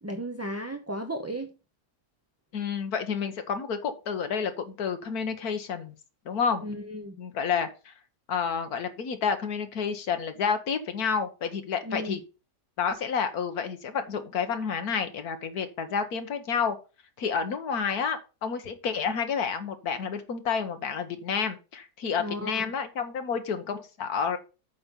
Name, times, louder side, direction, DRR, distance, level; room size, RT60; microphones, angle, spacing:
voice 1, 0.0-1.6 6.6-7.2 11.8-12.2 22.2-22.7, equal, 20° right, 0.4 m, -35 dB
voice 2, 2.5-5.9 6.2-6.7 7.2-7.9 8.3-12.2 12.8-16.8 17.2-24.4, left 6 dB, 65° left, 1.7 m, -30 dB
8.6 x 5.8 x 5.4 m
omnidirectional pair, 1.7 m